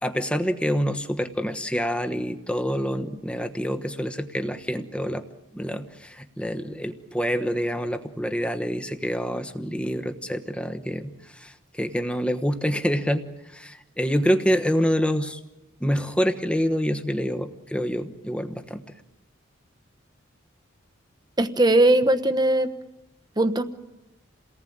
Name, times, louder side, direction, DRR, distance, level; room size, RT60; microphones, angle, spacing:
voice 1, 0.0-5.2 5.5-15.4 15.8-18.9, equal, 5° left, 8 dB, 1.2 m, -27 dB
voice 2, 21.4-22.7 23.4-23.6, right 1 dB, 20° right, 10 dB, 1.1 m, -19 dB
29.0 x 19.0 x 8.7 m, 1.0 s
head